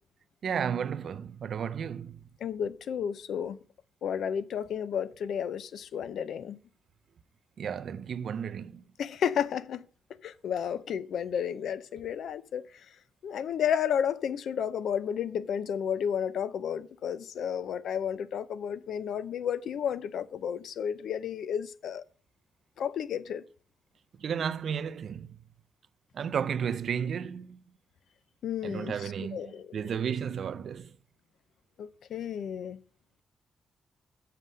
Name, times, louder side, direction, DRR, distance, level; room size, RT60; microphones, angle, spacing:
voice 1, 0.4-2.2 7.6-8.8 24.2-25.4 26.1-27.6 28.6-30.9, right 7 dB, 55° right, 0.4 m, -33 dB
voice 2, 2.4-3.6 4.0-6.6 9.0-9.8 10.2-12.6 13.2-22.0 22.8-23.4 28.4-29.7 31.8-32.8, left 8 dB, 70° left, 0.5 m, -32 dB
7.5 x 6.6 x 6.3 m
wide cardioid pair, 155°, 0 cm